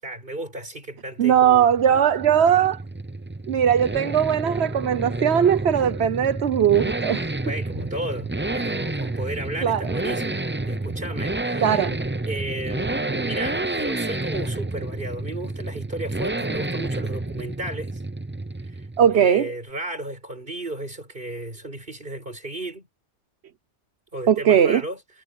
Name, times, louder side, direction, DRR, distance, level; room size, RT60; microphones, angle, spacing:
voice 1, 0.0-1.7 7.4-11.8 12.3-18.0 18.6-22.9 24.1-25.0, right 1 dB, 50° right, 6.2 m, -34 dB
sound 1, 1.2-19.2, right 2 dB, 15° right, 0.6 m, -30 dB
voice 2, 1.2-2.8 3.5-7.3 9.6-9.8 11.6-11.9 19.0-19.5 24.3-24.8, right 9 dB, 70° right, 1.2 m, -19 dB
omnidirectional pair, 1.2 m